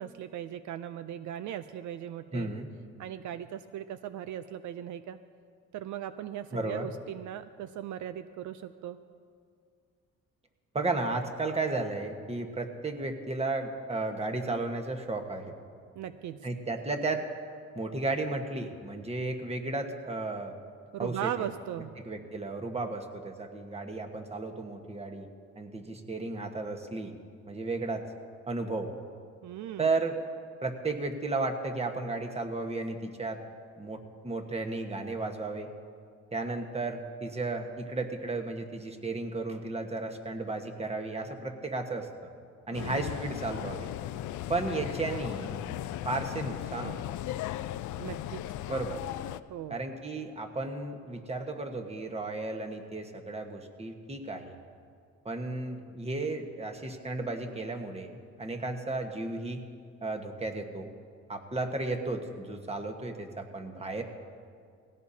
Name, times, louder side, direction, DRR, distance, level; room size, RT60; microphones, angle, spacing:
voice 1, 0.0-2.5 3.0-5.2 5.7-9.0 16.0-16.5 20.9-21.9 29.4-29.9 42.7-43.2 48.0-48.4 49.5-49.8, right 10 dB, 75° right, 12 dB, 0.5 m, -38 dB
voice 2, 2.3-2.7 6.5-6.9 10.7-15.5 16.4-17.2 17.7-20.5 21.0-21.5 22.0-25.3 25.6-27.1 27.4-28.0 28.5-28.9 29.8-30.1 30.6-33.4 33.8-35.7 36.3-42.1 42.7-43.9 44.5-45.7 46.0-47.0 48.7-49.0 49.7-54.5 55.2-59.6 60.0-60.9 61.3-64.0, right 3 dB, 20° right, 4 dB, 1.3 m, -34 dB
sound 1, 42.7-49.4, left 13 dB, 75° left, 0.5 m, -37 dB
18.5 x 16.5 x 2.8 m, 2.2 s
cardioid pair, 90°, 30 cm